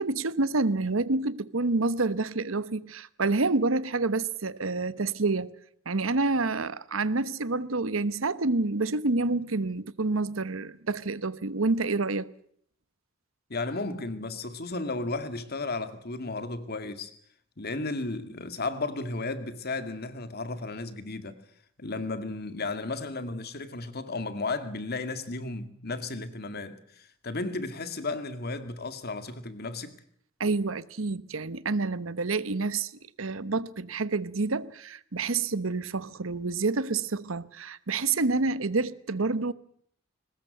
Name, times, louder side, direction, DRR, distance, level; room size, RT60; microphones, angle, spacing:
voice 1, 0.0-5.5 5.9-12.3 30.4-32.9 33.2-39.5, right 3 dB, 85° right, 1.1 m, -28 dB
voice 2, 13.5-17.1 17.6-21.4 21.8-29.9, left 3 dB, 50° left, 2.2 m, -34 dB
22.5 x 20.0 x 8.0 m
head